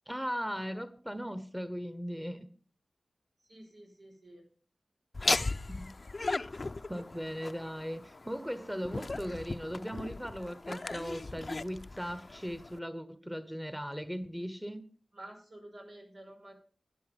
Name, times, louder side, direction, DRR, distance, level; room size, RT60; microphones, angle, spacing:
voice 1, 0.1-2.5 5.7-6.0 6.9-14.8, equal, 5° right, 1.1 m, -38 dB
voice 2, 3.5-4.4 15.1-16.5, right 1 dB, 85° right, 5.9 m, -50 dB
Laughter, 5.1-12.8, left 3 dB, 50° left, 0.6 m, -37 dB
12.0 x 10.5 x 5.3 m
cardioid pair, 40°, 0 cm